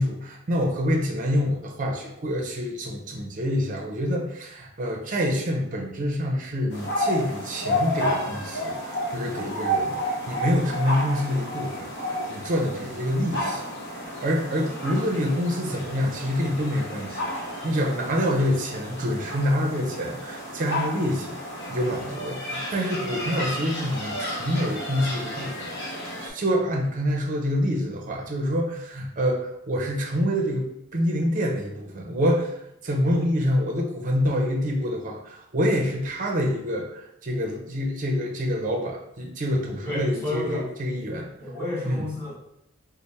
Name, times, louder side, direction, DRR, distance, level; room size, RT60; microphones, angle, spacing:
voice 1, 0.0-13.6 13.9-21.4 21.7-32.5 32.8-41.3 41.8-42.1, equal, 40° right, 1 dB, 0.5 m, -26 dB
sound 1, 6.7-26.3, equal, 55° left, 0.9 m, -31 dB
voice 2, 39.8-40.7 41.4-42.3, left 1 dB, 10° left, -8 dB, 1.2 m, -30 dB
3.2 x 2.0 x 4.1 m, 0.78 s
head